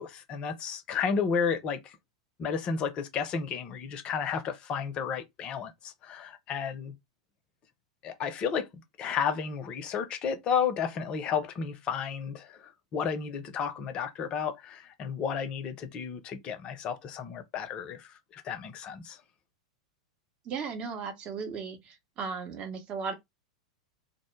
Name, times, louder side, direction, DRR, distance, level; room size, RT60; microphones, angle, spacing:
voice 1, 0.0-1.9 2.4-6.9 8.0-8.7 9.0-19.2, left 6 dB, 35° left, 0.5 m, -32 dB
voice 2, 20.5-23.1, right 5 dB, 35° right, 0.6 m, -36 dB
2.0 x 2.0 x 3.0 m
figure-of-eight pair, 90°, 3 cm